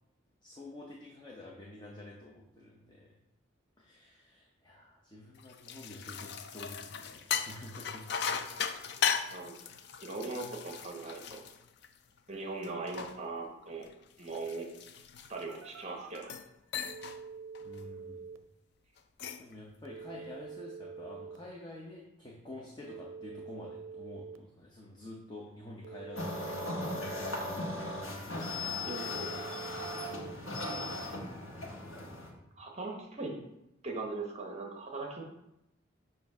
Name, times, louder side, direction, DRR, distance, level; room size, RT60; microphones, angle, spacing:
voice 1, 0.4-3.1 3.8-8.1 8.5-8.6 17.6-18.3 19.4-26.9 27.3-27.7 28.8-29.4, left 1 dB, 20° left, -2 dB, 0.6 m, -49 dB
sound 1, 5.4-12.2 12.6-15.7 16.2-16.5 16.7-17.2 17.6-17.8 19.0-19.5, left 7 dB, 55° left, 0.4 m, -37 dB
voice 2, 10.0-11.4 12.3-13.9 14.2-14.7 15.3-16.3 28.8-29.1 32.6-33.3 33.8-35.2, right 3 dB, 35° right, 0 dB, 0.8 m, -39 dB
Telephone, 15.4-16.4 16.9-18.4 19.9-21.4 22.8-24.4 25.8-27.4 28.9-30.4, right 5 dB, 85° right, 0.5 m, -46 dB
sound 2, 26.1-32.3, left 2 dB, 90° left, 1.3 m, -37 dB
7.0 x 2.6 x 5.3 m, 0.87 s
head